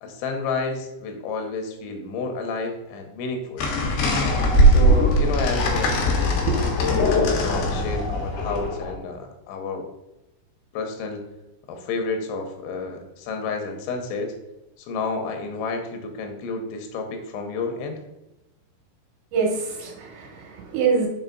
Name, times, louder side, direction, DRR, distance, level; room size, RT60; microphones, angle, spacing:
voice 1, 0.0-3.7 4.6-6.0 6.4-9.9 10.7-11.2 11.7-14.3 14.8-18.0, left 3 dB, 90° left, 4 dB, 3.4 m, -30 dB
sound 1, 3.6-9.0, equal, 70° left, 3.3 m, -20 dB
voice 2, 19.3-21.1, right 5 dB, 80° right, 0 dB, 3.6 m, -25 dB
7.0 x 4.5 x 4.0 m, 0.95 s
omnidirectional pair, 5.3 m